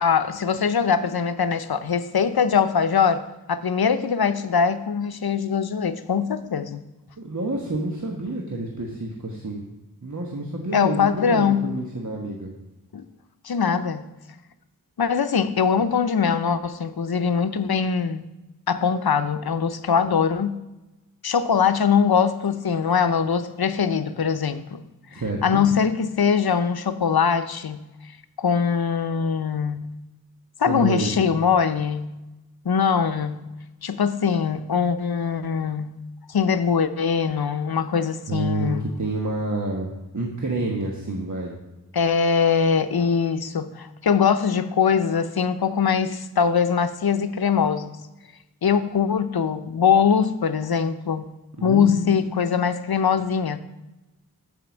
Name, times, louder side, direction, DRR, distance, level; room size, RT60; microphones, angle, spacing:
voice 1, 0.0-3.2 3.5-6.8 10.7-11.7 12.9-13.0 13.4-14.0 15.0-18.2 18.7-20.6 21.2-24.8 25.1-27.9 28.4-29.8 30.6-32.2 32.6-33.5 33.8-36.0 36.3-38.9 41.9-48.0 48.6-51.3 51.6-53.6, left 6 dB, 85° left, 11 dB, 0.6 m, -22 dB
voice 2, 7.2-9.6 10.0-12.5 25.1-25.6 30.7-31.3 38.3-41.5 51.6-52.6, right 2 dB, 50° right, -1 dB, 1.3 m, -29 dB
7.6 x 5.7 x 7.2 m, 1.0 s
wide cardioid pair, 50°, 36 cm